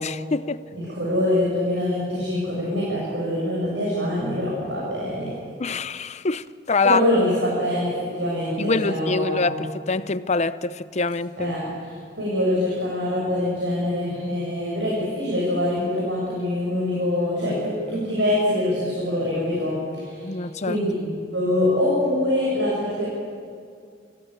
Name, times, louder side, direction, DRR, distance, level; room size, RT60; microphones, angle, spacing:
voice 1, 0.0-0.6 5.6-7.0 8.6-11.5 20.2-20.8, left 4 dB, 40° left, 0.7 m, -25 dB
voice 2, 0.7-5.3 6.8-9.5 11.4-23.1, left 1 dB, 90° right, 7.5 m, -24 dB
27.0 x 16.0 x 9.0 m
head